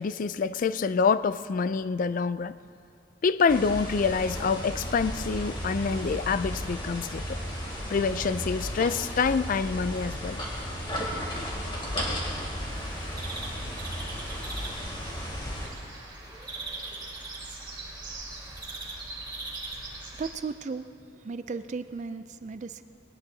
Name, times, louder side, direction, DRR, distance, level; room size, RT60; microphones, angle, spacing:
voice 1, 0.0-2.5 3.2-7.4 7.9-10.4, left 5 dB, 45° left, 0.3 m, -26 dB
sound 1, 3.5-15.7, equal, 25° left, 2.7 m, -34 dB
sound 2, 12.7-20.3, right 2 dB, 20° right, 1.8 m, -40 dB
voice 2, 20.1-20.9 21.1-22.8, right 4 dB, 35° right, 0.4 m, -35 dB
21.5 x 18.5 x 2.7 m
head